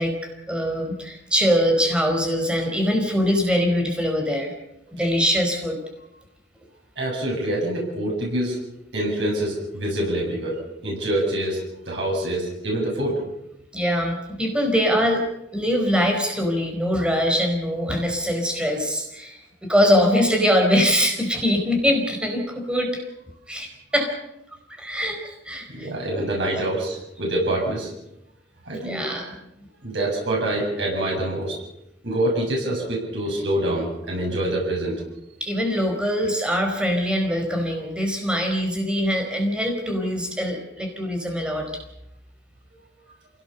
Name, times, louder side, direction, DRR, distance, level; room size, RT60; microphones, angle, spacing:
voice 1, 0.0-4.5 4.9-5.8 13.7-15.3 15.5-23.0 23.5-23.7 23.9-24.1 24.7-26.3 28.7-29.4 35.4-41.7, equal, 5° right, 2 dB, 4.5 m, -23 dB
voice 2, 7.0-8.6 8.9-11.6 11.9-13.2 25.7-27.9 28.7-29.0 29.8-31.6 32.0-35.0, right 1 dB, 85° right, -2 dB, 7.5 m, -25 dB
27.0 x 17.5 x 6.9 m, 0.85 s
head